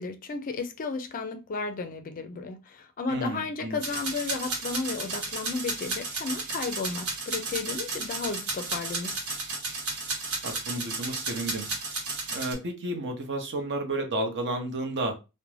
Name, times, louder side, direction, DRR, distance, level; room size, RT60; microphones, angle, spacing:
voice 1, 0.0-9.1, left 4 dB, 40° left, 0.4 m, -33 dB
voice 2, 3.1-3.8 10.4-11.7 12.3-15.2, right 2 dB, 55° right, 0.6 m, -32 dB
sound 1, 3.8-12.5, right 3 dB, 90° right, 1.0 m, -33 dB
2.4 x 2.1 x 3.1 m
head